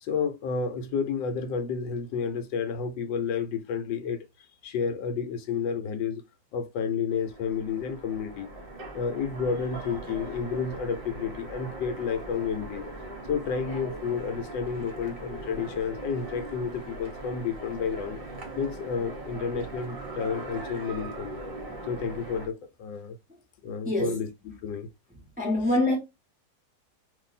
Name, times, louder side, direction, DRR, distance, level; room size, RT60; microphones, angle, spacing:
voice 1, 0.0-4.2 4.6-6.2 6.5-8.5 8.9-12.9 13.3-18.2 18.6-21.4 21.9-23.2 23.6-24.3 24.6-24.9, left 6 dB, 80° left, 1.2 m, -31 dB
Train, 7.1-22.5, right 2 dB, 45° right, 0.8 m, -40 dB
voice 2, 23.8-24.2 25.4-26.0, left 1 dB, 5° right, 0.7 m, -24 dB
2.6 x 2.5 x 3.9 m
omnidirectional pair, 2.0 m